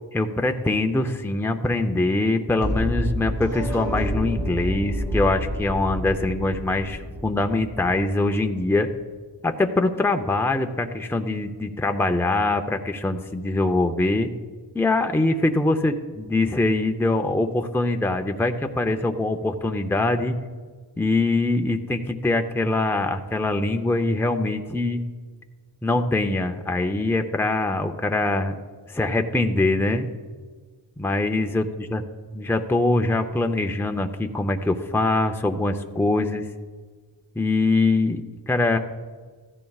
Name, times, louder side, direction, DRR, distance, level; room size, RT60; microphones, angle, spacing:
voice 1, 0.1-8.9 9.4-14.3 14.7-20.4 21.0-25.0 25.8-28.5 28.9-30.1 31.0-32.0 32.3-36.5 37.4-38.8, left 2 dB, 5° left, 5 dB, 0.6 m, -23 dB
sound 1, 2.6-8.6, equal, 45° right, 4.0 m, -29 dB
15.0 x 14.0 x 2.4 m, 1.5 s
wide cardioid pair, 75°, 43 cm